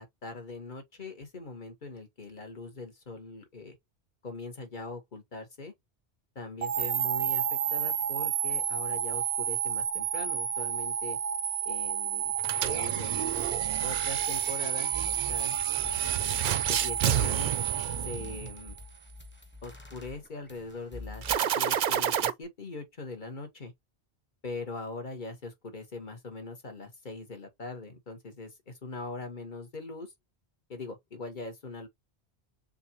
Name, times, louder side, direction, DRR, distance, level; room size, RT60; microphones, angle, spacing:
voice 1, 0.0-3.8 4.2-5.7 6.3-11.2 11.6-12.3 12.6-13.3 13.8-16.1 16.7-17.5 18.0-18.8 19.6-21.2 21.5-23.7 24.4-30.1 30.7-31.9, left 3 dB, 50° left, 1.6 m, -41 dB
sound 1, 6.6-18.8, right 10 dB, 90° right, 0.9 m, -31 dB
sound 2, 12.4-18.6 21.2-22.3, right 9 dB, 60° right, 0.6 m, -31 dB
sound 3, 14.5-14.6 14.9-21.4, left 3 dB, 10° left, 1.1 m, -46 dB
6.6 x 2.6 x 2.9 m
omnidirectional pair, 1.1 m